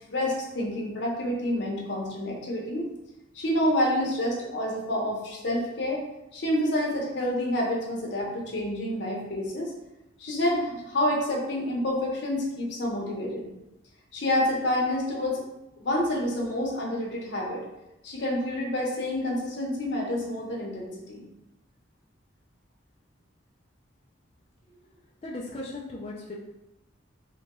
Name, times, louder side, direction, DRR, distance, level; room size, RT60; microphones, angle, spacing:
voice 1, 0.1-2.9 3.3-6.1 6.3-9.7 10.2-13.5 14.1-15.4 15.8-17.6 18.0-21.2, left 1 dB, 60° left, -2 dB, 0.7 m, -28 dB
voice 2, 24.7-26.3, left 2 dB, 30° left, -5 dB, 0.3 m, -38 dB
2.9 x 2.3 x 2.9 m, 0.93 s
head